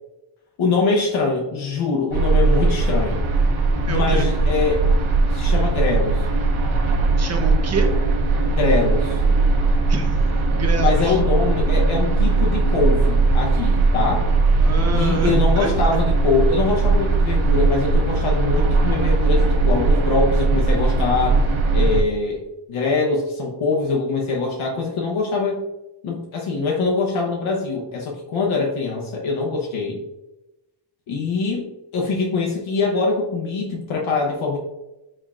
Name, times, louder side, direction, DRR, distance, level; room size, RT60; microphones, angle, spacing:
voice 1, 0.6-3.2 3.9-4.8 5.3-6.3 8.5-9.2 10.5-14.3 14.9-21.4 21.7-25.7 26.0-30.0 31.1-34.6, left 4 dB, 85° left, -1 dB, 0.9 m, -23 dB
sound 1, 2.1-22.0, right 3 dB, 80° right, 1.0 m, -19 dB
voice 2, 3.9-4.3 7.2-7.9 9.9-10.2 10.5-11.2 14.6-15.7, right 3 dB, 35° right, 4 dB, 0.7 m, -26 dB
4.5 x 4.2 x 2.3 m, 0.99 s
wide cardioid pair, 145°, 47 cm